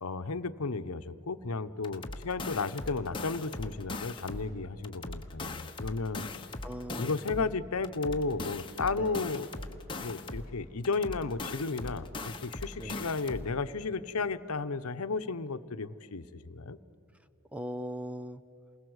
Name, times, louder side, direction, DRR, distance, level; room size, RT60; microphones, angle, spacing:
voice 1, 0.0-6.2 7.0-9.5 10.0-16.8, left 4 dB, 85° left, 11 dB, 0.9 m, -33 dB
sound 1, 1.8-4.5 4.8-7.5 7.8-10.5 10.8-13.5, left 2 dB, 25° left, 1.2 m, -40 dB
voice 2, 6.6-7.5 8.9-9.3 12.8-13.1 17.5-18.4, equal, 5° right, 12 dB, 0.6 m, -40 dB
28.5 x 21.0 x 8.0 m, 2.8 s
head